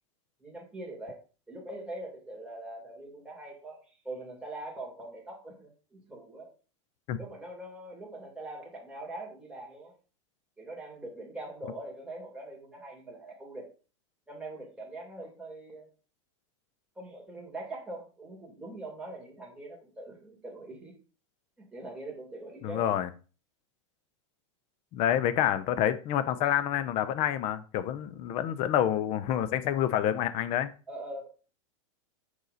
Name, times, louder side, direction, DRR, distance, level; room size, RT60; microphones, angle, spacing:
voice 1, 0.4-1.2 1.5-3.8 4.0-6.5 7.2-9.9 10.6-13.7 14.3-15.9 17.0-20.9 21.6-22.9 30.9-31.5, right 2 dB, 5° right, 2.8 m, -42 dB
voice 2, 22.6-23.1 24.9-30.7, left 10 dB, 40° left, 0.7 m, -28 dB
6.8 x 4.8 x 4.0 m
supercardioid pair, 135°, 16 cm